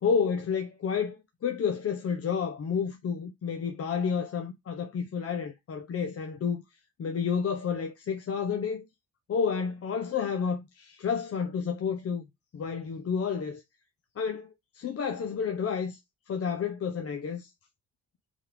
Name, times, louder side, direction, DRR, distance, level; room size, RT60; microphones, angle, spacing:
voice 1, 0.0-6.6 7.0-8.9 9.3-12.2 12.5-13.6 14.2-16.0 16.3-17.5, left 6 dB, 50° left, 0.9 m, -30 dB
5.4 x 3.7 x 4.9 m
cardioid pair, 90°, 30 cm